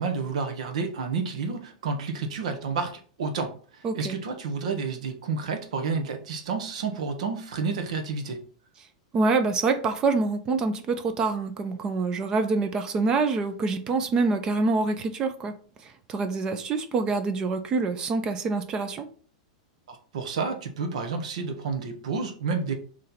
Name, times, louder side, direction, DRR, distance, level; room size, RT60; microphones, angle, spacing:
voice 1, 0.0-8.4 19.9-22.7, right 4 dB, 75° right, 6 dB, 1.1 m, -30 dB
voice 2, 3.8-4.2 9.1-15.5 15.8-19.1, right 3 dB, 20° right, 9 dB, 0.4 m, -26 dB
4.2 x 3.2 x 4.0 m, 0.42 s
supercardioid pair, 170°, 4 cm